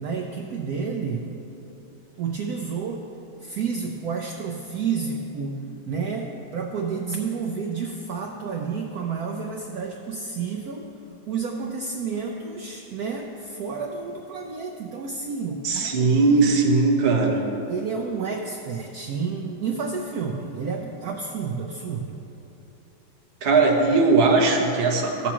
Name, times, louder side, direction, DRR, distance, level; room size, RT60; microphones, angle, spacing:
voice 1, 0.0-1.3 2.2-3.0 3.4-5.6 5.9-10.9 11.3-16.5 17.7-22.2, right 5 dB, 85° right, 2 dB, 0.8 m, -30 dB
voice 2, 15.6-17.4 23.4-25.3, right 3 dB, 40° right, 0 dB, 0.9 m, -19 dB
14.5 x 7.1 x 2.9 m, 2.8 s
omnidirectional pair, 2.2 m